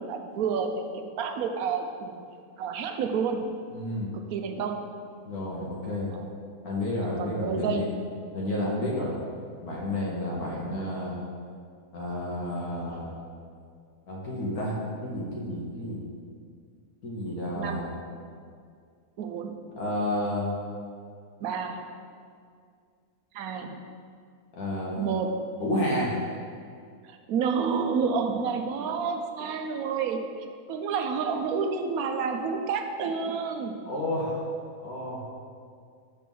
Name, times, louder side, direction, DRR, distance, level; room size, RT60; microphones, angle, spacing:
voice 1, 0.0-2.2 2.6-3.5 4.1-4.9 6.1-6.3 7.0-7.9 17.5-17.9 19.2-19.7 21.4-21.8 23.3-23.8 25.0-25.4 27.0-30.2 30.7-33.8, right 5 dB, 75° right, 5 dB, 1.0 m, -29 dB
voice 2, 3.7-4.1 5.3-6.1 6.6-7.8 8.3-9.2 9.6-11.2 11.9-13.2 14.1-14.7 15.0-16.0 17.0-17.9 19.8-20.5 24.6-25.0 25.6-26.1 33.9-34.4 34.8-35.2, left 1 dB, 75° left, -4 dB, 1.5 m, -30 dB
6.0 x 4.2 x 5.3 m, 2.2 s
omnidirectional pair, 1.6 m